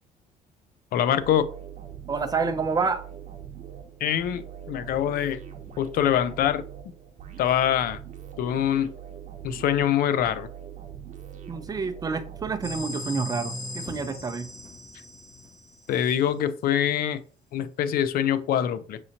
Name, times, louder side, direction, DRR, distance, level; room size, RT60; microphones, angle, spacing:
voice 1, 0.9-1.5 4.0-5.4 5.8-6.6 7.4-8.0 8.4-8.9 9.4-10.5 15.9-17.2 17.5-19.0, left 10 dB, 60° left, 14 dB, 0.5 m, -24 dB
sound 1, 1.2-13.4, right 9 dB, 45° right, 0.9 m, -42 dB
voice 2, 2.1-3.0 11.5-14.5, right 4 dB, 20° right, 8 dB, 0.5 m, -28 dB
sound 2, 12.6-16.3, left 2 dB, 35° left, 1.7 m, -38 dB
6.1 x 2.8 x 2.8 m, 0.41 s
cardioid pair, 110°, 17 cm